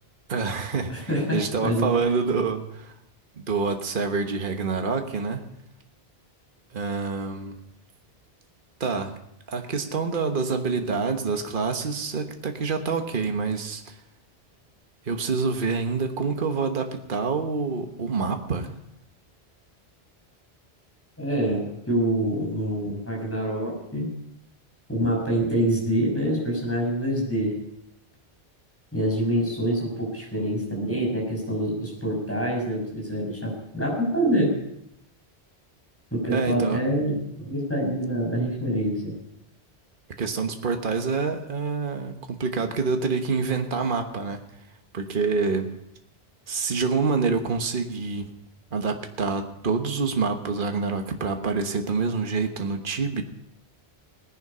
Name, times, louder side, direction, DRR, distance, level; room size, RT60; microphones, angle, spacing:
voice 1, 0.3-2.9 3.4-5.4 6.7-7.5 8.8-9.1 9.5-14.0 15.0-18.7 36.3-36.8 40.2-44.4 44.9-45.7 46.5-48.3 48.7-53.2, right 4 dB, 55° right, 5 dB, 1.4 m, -27 dB
voice 2, 0.9-1.9 21.2-24.1 24.9-27.5 28.9-34.5 36.1-39.1, right 1 dB, 10° left, -1 dB, 6.0 m, -26 dB
19.5 x 10.5 x 5.6 m, 0.81 s
omnidirectional pair, 1.1 m